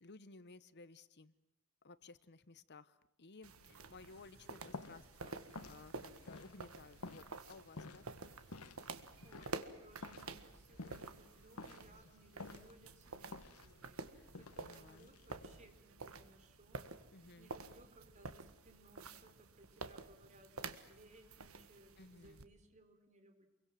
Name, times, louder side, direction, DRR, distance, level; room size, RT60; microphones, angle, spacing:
voice 1, 0.0-1.3 1.8-8.0 14.1-14.3 14.6-15.1 17.1-17.5 22.0-22.5, left 3 dB, 50° left, 15 dB, 0.9 m, -58 dB
sound 1, 3.4-22.4, right 3 dB, 70° right, 1.7 m, -51 dB
sound 2, 3.6-15.8, left 3 dB, 85° left, 1.5 m, -54 dB
voice 2, 9.2-14.0 14.3-16.8 17.4-23.5, right 1 dB, 35° right, 6 dB, 4.1 m, -64 dB
28.5 x 23.0 x 7.6 m, 0.80 s
head